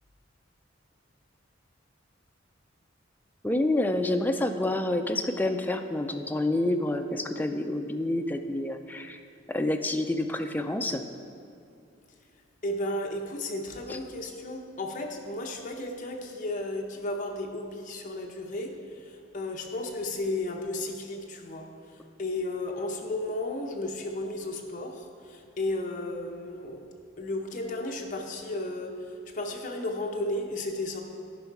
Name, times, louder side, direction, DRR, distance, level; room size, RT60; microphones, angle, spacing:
voice 1, 3.4-9.2 9.5-11.0 13.9-14.0, left 1 dB, 10° left, 5 dB, 0.4 m, -28 dB
voice 2, 12.6-18.8 19.0-21.7 22.2-26.8 27.2-28.9 29.3-31.0, left 2 dB, 40° left, 2 dB, 0.8 m, -33 dB
10.5 x 5.5 x 4.7 m, 2.5 s
head